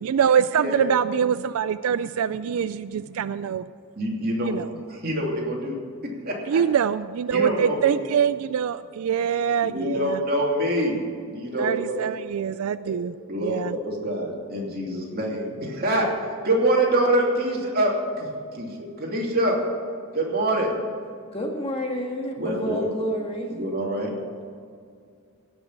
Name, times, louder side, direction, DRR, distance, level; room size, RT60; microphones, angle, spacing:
voice 1, 0.0-3.6 4.4-4.7 6.5-10.2 11.6-13.1 13.4-13.7, right 8 dB, 70° right, 14 dB, 0.3 m, -24 dB
voice 2, 0.5-1.0 4.0-4.6 5.0-5.8 6.3-6.4 7.3-8.0 9.7-10.9 11.3-12.0 13.3-16.1 16.4-17.9 18.2-18.3 18.5-18.7 19.0-19.6 20.1-20.7 22.4-22.9 23.6-24.1, right 1 dB, 40° right, -2 dB, 2.9 m, -25 dB
voice 3, 21.3-23.5, equal, 25° left, 1 dB, 1.8 m, -29 dB
17.0 x 6.2 x 8.8 m, 2.2 s
head